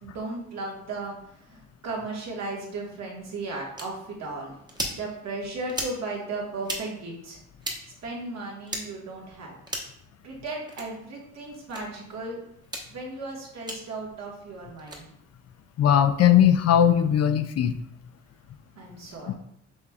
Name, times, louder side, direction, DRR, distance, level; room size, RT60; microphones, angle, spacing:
voice 1, 0.0-1.1 1.4-4.5 4.9-7.4 8.0-9.6 10.2-12.4 12.9-15.0 18.8-19.3, right 2 dB, 60° right, -2 dB, 1.5 m, -35 dB
sound 1, 3.8-3.9 4.7-5.0 5.7-6.0 6.6-6.8 7.6-7.8 8.7-8.8 9.7-10.0 10.7-10.9 11.7-11.8 12.6-12.9 13.7-13.8 14.8-15.0, right 1 dB, 15° right, 1.1 m, -33 dB
voice 2, 15.8-17.7 19.3-19.4, left 9 dB, 55° left, 9 dB, 0.5 m, -19 dB
6.1 x 3.3 x 2.4 m, 0.73 s
cardioid pair, 90°, 30 cm